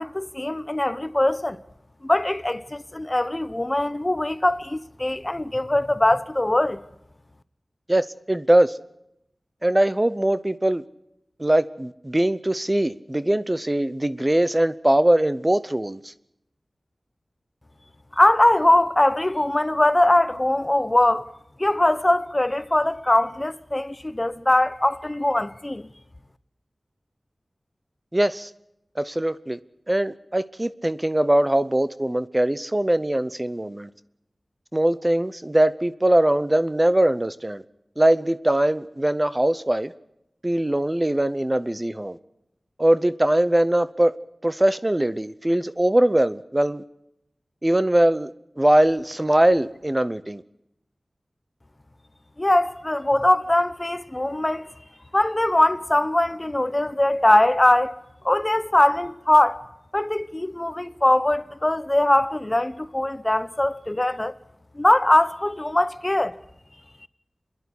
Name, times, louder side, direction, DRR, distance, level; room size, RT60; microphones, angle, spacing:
voice 1, 0.0-1.6 2.0-6.8 18.2-21.3 21.6-25.9 52.4-54.7 55.1-58.0 58.2-59.6 59.9-64.3 64.8-66.4, left 1 dB, 25° left, 0.8 m, -21 dB
voice 2, 7.9-8.7 9.6-10.8 11.4-16.1 28.1-28.5 29.0-29.6 29.9-33.9 34.7-37.6 38.0-39.9 40.4-42.2 42.8-44.2 44.4-46.8 47.6-48.3 48.6-50.4, right 1 dB, 25° right, 0.7 m, -21 dB
27.0 x 11.0 x 9.8 m
wide cardioid pair, 60°, 0 cm